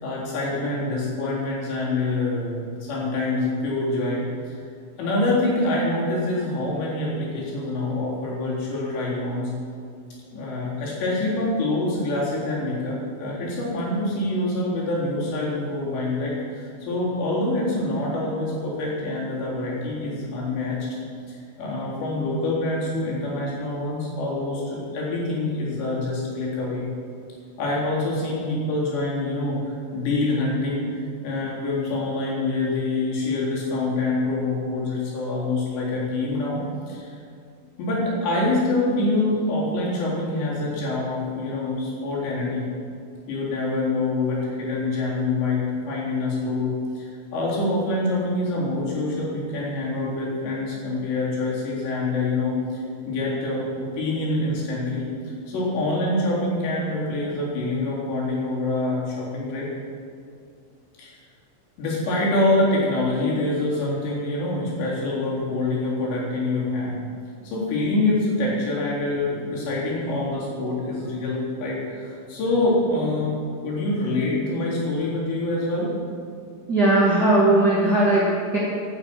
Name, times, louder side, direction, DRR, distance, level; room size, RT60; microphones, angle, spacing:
voice 1, 0.0-4.6 5.0-9.5 10.3-20.8 21.3-26.8 27.6-36.6 36.9-37.2 37.8-42.7 43.3-59.7 61.0-61.2 61.8-67.0 67.4-73.4 73.6-75.9, left 2 dB, 65° left, -5 dB, 5.8 m, -25 dB
voice 2, 76.7-78.6, right 2 dB, 40° right, -7 dB, 1.3 m, -18 dB
17.5 x 9.8 x 6.1 m, 2.4 s
omnidirectional pair, 5.6 m